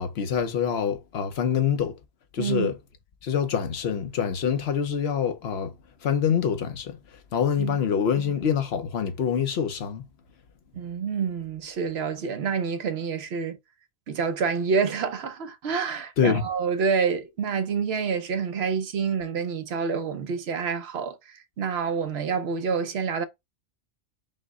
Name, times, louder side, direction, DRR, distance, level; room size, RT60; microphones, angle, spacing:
voice 1, 0.0-2.0 2.3-2.8 3.2-5.7 6.0-7.0 7.3-10.1 16.2-16.4, left 7 dB, 75° left, 1.0 m, -25 dB
voice 2, 2.4-2.7 7.6-7.8 10.7-13.6 14.1-23.2, right 5 dB, 75° right, 1.0 m, -28 dB
5.5 x 2.1 x 3.6 m
omnidirectional pair, 1.1 m